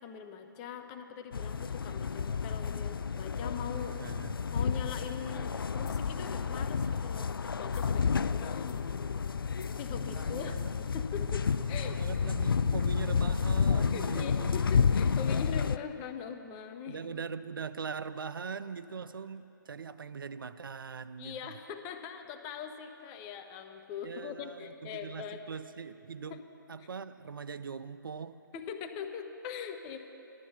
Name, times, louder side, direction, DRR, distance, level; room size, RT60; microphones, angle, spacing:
voice 1, 0.0-4.0 4.5-9.1 9.8-11.9 13.9-17.0 21.2-25.4 26.3-26.4 26.8-26.9 28.5-30.0, left 7 dB, 25° left, 6 dB, 0.8 m, -42 dB
sound 1, 1.3-15.8, left 6 dB, 85° left, 0.4 m, -30 dB
voice 2, 4.0-4.3 10.0-10.7 11.8-14.5 16.9-21.4 24.0-26.4 26.7-28.4, right 6 dB, 75° right, 13 dB, 0.5 m, -41 dB
sound 2, 4.9-5.2 5.7-6.1 6.6-7.1 7.6-8.2 8.7-9.0 9.5-9.9 10.5-10.8 11.4-11.5, left 6 dB, 40° left, 3.2 m, -62 dB
13.5 x 12.0 x 5.8 m, 2.9 s
figure-of-eight pair, 140°, 11 cm